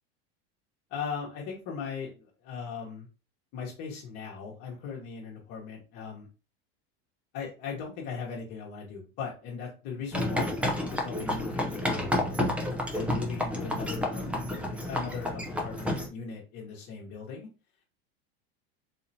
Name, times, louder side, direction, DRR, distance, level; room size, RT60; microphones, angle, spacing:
voice 1, 0.9-3.1 3.5-6.3 7.3-12.4 12.7-17.5, left 6 dB, 55° left, -3 dB, 1.2 m, -39 dB
sound 1, 10.1-16.1, left 1 dB, 5° right, 0.6 m, -30 dB
4.2 x 2.8 x 2.8 m, 0.32 s
supercardioid pair, 135°, 31 cm